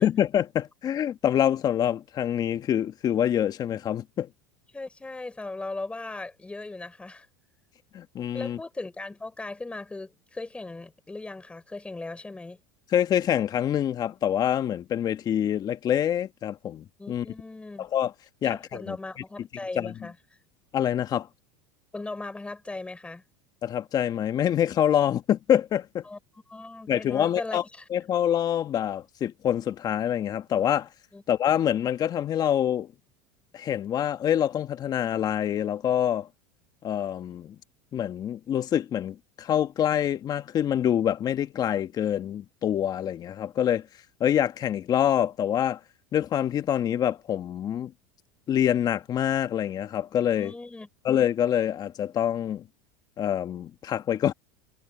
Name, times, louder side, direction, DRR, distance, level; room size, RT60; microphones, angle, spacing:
voice 1, 0.0-4.3 7.9-8.6 12.9-17.3 17.8-18.1 18.4-19.0 19.7-19.9 20.7-21.3 23.6-26.0 26.9-27.6 27.9-30.9 31.3-32.9 33.5-36.3 36.8-37.5 37.9-43.9 44.2-45.8 46.1-47.9 48.5-50.5 51.0-52.6 53.2-54.3, left 10 dB, 35° left, 1.5 m, -26 dB
voice 2, 4.7-7.3 8.3-12.6 17.0-17.9 18.4-20.2 21.9-23.2 26.1-26.2 26.5-27.8 31.1-31.2 50.4-50.9, left 2 dB, 10° left, 4.0 m, -38 dB
supercardioid pair, 110°, 11 cm